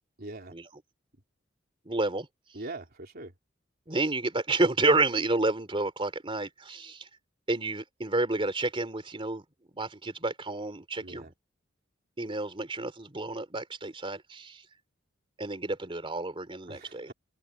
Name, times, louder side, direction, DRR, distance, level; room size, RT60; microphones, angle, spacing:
voice 1, 0.2-0.5 2.5-3.3 11.0-11.3 16.7-17.1, right 2 dB, 55° right, 3.4 m, -42 dB
voice 2, 1.8-2.3 3.9-7.1 7.5-9.4 9.7-11.3 12.2-14.6 15.4-17.1, right 2 dB, 30° right, 3.3 m, -30 dB
open air
head